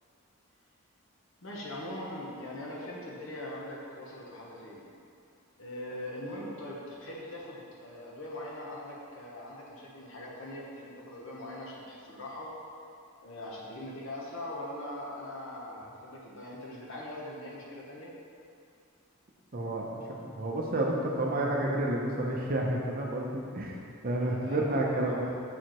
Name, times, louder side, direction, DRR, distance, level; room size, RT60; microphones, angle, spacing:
voice 1, 1.4-4.9 5.6-12.5 13.2-18.1 24.2-25.4, left 1 dB, 60° left, -4 dB, 0.9 m, -41 dB
voice 2, 19.5-23.7 24.0-25.3, right 1 dB, 40° right, -1 dB, 0.6 m, -30 dB
7.1 x 4.8 x 3.0 m, 2.5 s
head